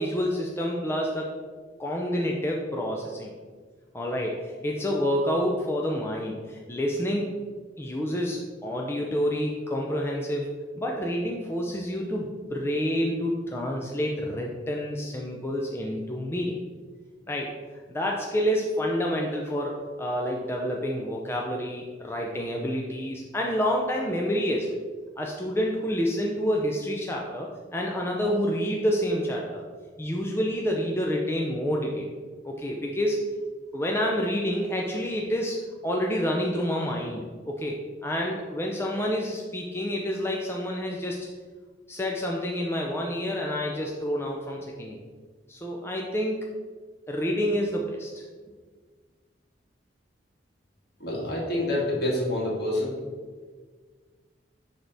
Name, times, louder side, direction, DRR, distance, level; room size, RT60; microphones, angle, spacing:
voice 1, 0.0-1.3 1.8-3.3 3.9-7.3 7.8-16.6 17.3-17.5 17.9-24.7 25.2-29.6 30.0-32.1 32.4-33.2 33.7-41.3 41.9-45.0 45.5-46.4 47.1-48.2, equal, 15° left, -1 dB, 0.5 m, -28 dB
voice 2, 51.0-52.9, left 1 dB, 55° left, -3 dB, 1.9 m, -27 dB
10.0 x 3.4 x 4.0 m, 1.5 s
head